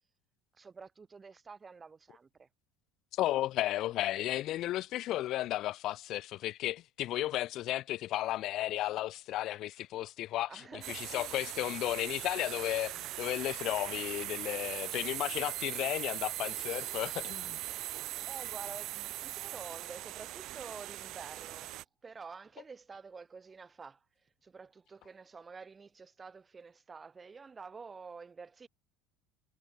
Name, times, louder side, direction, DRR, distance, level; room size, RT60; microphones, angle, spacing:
voice 1, 0.5-2.5 10.5-11.4 18.2-24.0 24.4-28.7, right 5 dB, 25° right, 2.5 m, -49 dB
voice 2, 3.1-10.6 10.9-17.6, left 14 dB, 55° left, 0.4 m, -34 dB
sound 1, 10.8-21.8, right 16 dB, 55° right, 0.7 m, -40 dB
supercardioid pair, 100°, 0 cm